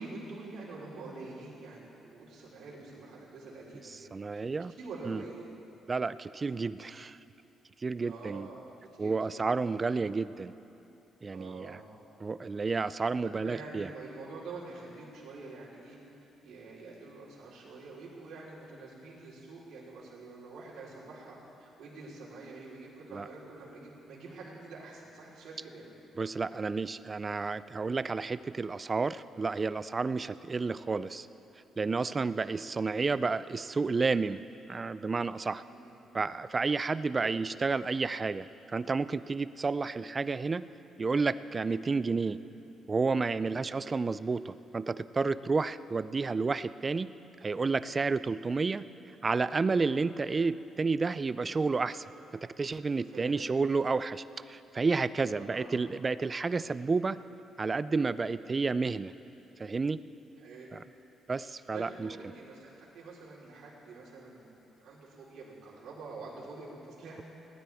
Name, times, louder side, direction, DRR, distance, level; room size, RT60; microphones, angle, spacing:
voice 1, 0.0-4.5 4.8-5.5 8.0-9.5 11.3-12.0 13.2-16.0 16.4-25.9 35.6-36.1 37.2-37.3 53.1-53.4 55.3-55.8 56.5-56.6 58.3-58.5 60.4-60.8 61.4-64.5 64.8-67.2, right 3 dB, 75° right, -7 dB, 3.8 m, -46 dB
voice 2, 4.1-4.7 5.1-5.2 5.9-7.2 7.8-8.5 9.0-10.5 11.2-11.8 12.2-13.9 23.1-23.3 26.2-31.3 31.8-34.4 34.7-35.6 36.1-40.7 41.0-42.4 42.9-47.1 47.4-48.8 49.2-52.1 52.3-57.2 57.6-59.1 59.6-60.0 60.7-60.8 61.3-62.1, right 4 dB, 25° right, 15 dB, 0.3 m, -31 dB
19.5 x 12.5 x 3.5 m, 2.9 s
cardioid pair, 120°, 0 cm